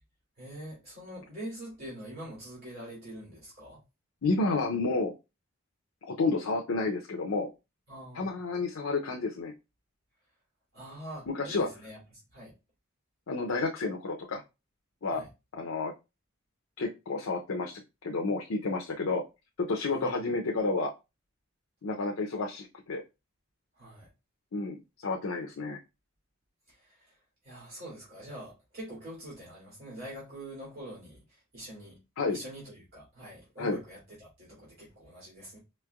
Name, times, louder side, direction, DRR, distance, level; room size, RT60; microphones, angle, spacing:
voice 1, 0.4-3.8 7.9-8.3 10.7-12.0 12.3-12.5 15.1-15.3 19.9-20.3 23.8-24.1 26.7-27.1 27.4-32.0 32.3-35.6, right 1 dB, 50° right, 2.6 m, -44 dB
voice 2, 4.2-5.1 6.0-7.5 8.1-9.5 11.3-11.7 13.3-14.4 15.0-15.2 15.5-15.9 16.8-19.2 19.6-20.9 21.8-23.0 24.5-25.8 32.2-32.4 33.6-33.8, left 3 dB, 85° left, 0.6 m, -30 dB
5.1 x 3.2 x 2.3 m
head